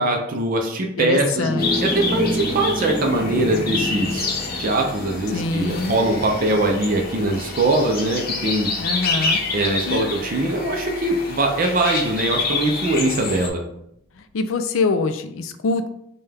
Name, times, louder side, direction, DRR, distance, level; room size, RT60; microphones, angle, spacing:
voice 1, 0.0-1.5 1.8-4.3 4.6-8.7 9.5-13.6, right 2 dB, 45° right, 2 dB, 0.5 m, -22 dB
voice 2, 1.0-1.9 5.3-6.0 8.8-9.4 9.9-10.0 14.1-15.9, left 4 dB, 85° left, 9 dB, 0.4 m, -24 dB
sound 1, 1.3-10.9, equal, 10° right, 0.8 m, -30 dB
sound 2, 1.6-13.5, left 3 dB, 50° left, 0.7 m, -28 dB
5.4 x 2.3 x 3.4 m, 0.77 s
head